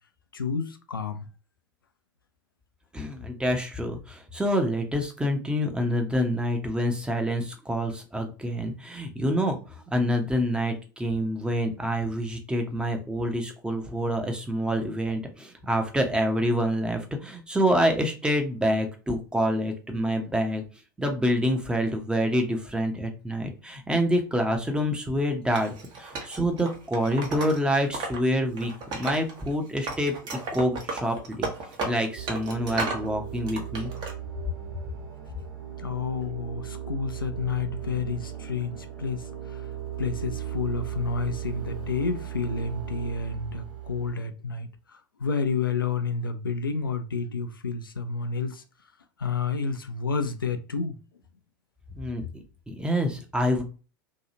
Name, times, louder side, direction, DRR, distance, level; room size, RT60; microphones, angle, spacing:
voice 1, 0.3-1.2 35.8-39.7 40.0-48.6 49.2-50.9, left 5 dB, 85° left, 0.4 m, -30 dB
voice 2, 2.9-20.6 21.0-28.7 29.0-30.1 30.5-31.5 31.8-33.9 52.0-53.6, equal, 10° right, 0.7 m, -27 dB
Wood, 25.5-28.2 28.5-29.5 29.8-33.1 33.5-34.1, right 3 dB, 40° right, 0.9 m, -34 dB
sound 1, 32.2-44.1, right 11 dB, 60° right, 1.2 m, -37 dB
2.8 x 2.3 x 2.7 m
figure-of-eight pair, 80°, 11 cm